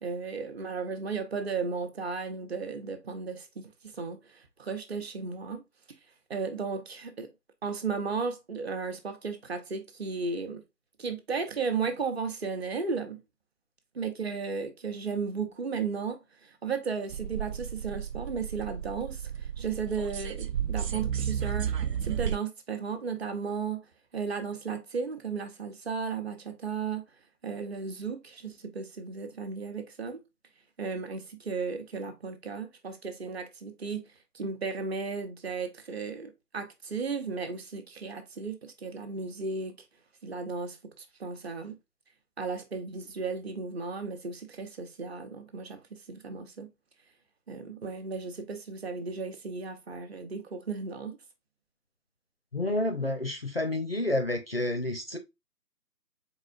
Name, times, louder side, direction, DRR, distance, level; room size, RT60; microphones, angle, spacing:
voice 1, 0.0-5.6 6.3-7.3 7.6-10.6 11.0-13.2 13.9-21.7 22.0-23.8 24.1-27.0 27.4-30.2 30.8-34.1 34.3-39.8 40.2-41.8 42.4-46.7 47.5-51.2, right 5 dB, 40° right, 0.8 m, -35 dB
sound 1, 17.1-22.4, right 8 dB, 80° right, 0.7 m, -33 dB
voice 2, 52.5-55.2, left 1 dB, 40° left, 0.4 m, -29 dB
3.9 x 3.8 x 2.3 m
figure-of-eight pair, 150°, 48 cm